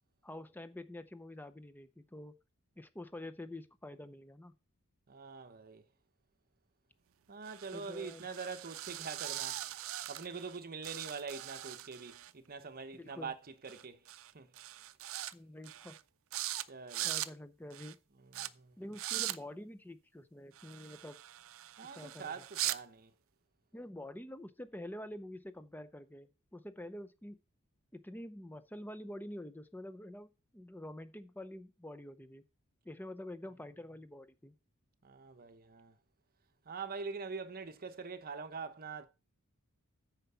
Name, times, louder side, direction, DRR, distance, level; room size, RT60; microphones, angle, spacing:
voice 1, 0.2-2.3 2.8-4.5 7.7-8.3 12.9-13.3 15.3-16.0 17.0-18.0 18.8-21.2 22.0-22.4 23.7-27.4 27.9-32.4 32.8-34.5, left 1 dB, 10° left, 0.6 m, -47 dB
voice 2, 5.1-5.8 7.3-9.6 10.1-13.4 13.6-14.0 14.3-14.5 16.7-17.1 18.2-18.8 21.8-23.1 35.0-35.9 36.7-39.1, right 5 dB, 40° right, 0.9 m, -44 dB
sound 1, 7.5-10.6 10.8-12.3 13.7-13.8 14.1-14.3 14.6-15.3 15.6-16.0 16.3-16.6 16.9-17.3 17.7-17.9 18.3-18.5 18.9-19.4 20.6-22.8, right 14 dB, 65° right, 0.5 m, -41 dB
9.0 x 5.8 x 5.6 m
head